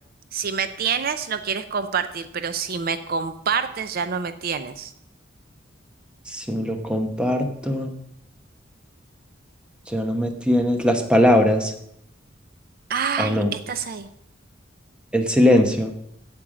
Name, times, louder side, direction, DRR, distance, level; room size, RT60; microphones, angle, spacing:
voice 1, 0.3-4.9 12.9-14.1, right 6 dB, 50° right, 10 dB, 0.5 m, -27 dB
voice 2, 6.3-7.9 9.9-11.7 13.2-13.5 15.1-15.9, left 1 dB, 5° right, 5 dB, 1.0 m, -20 dB
8.7 x 8.7 x 6.2 m, 0.78 s
head